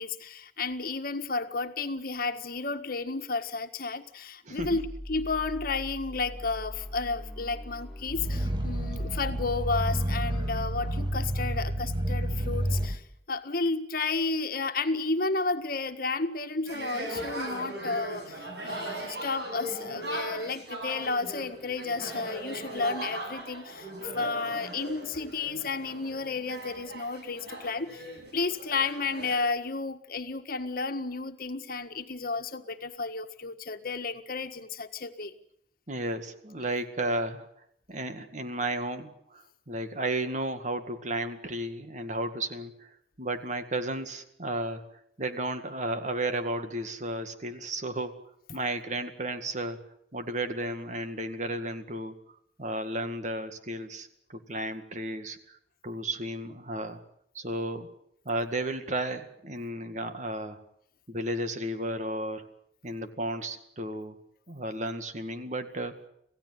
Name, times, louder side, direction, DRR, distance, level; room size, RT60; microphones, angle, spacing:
voice 1, 0.0-13.0 13.3-28.1 28.3-35.3 48.5-48.6, left 3 dB, 55° left, 8 dB, 1.6 m, -32 dB
voice 2, 4.4-4.9 35.9-37.5 37.9-42.9 43.2-44.8 45.2-48.2 48.5-49.8 50.1-52.2 52.6-55.6 55.8-57.0 57.3-57.9 58.3-60.6 61.1-62.5 62.8-64.2 64.5-65.9, right 1 dB, 45° right, 8 dB, 2.0 m, -33 dB
sound 1, 4.6-11.5, equal, 5° left, 2.8 m, -42 dB
Growling, 8.0-13.0, right 1 dB, 25° right, 1.8 m, -30 dB
sound 2, 16.7-29.4, right 1 dB, 65° right, 7.4 m, -39 dB
27.0 x 16.5 x 9.4 m, 0.74 s
head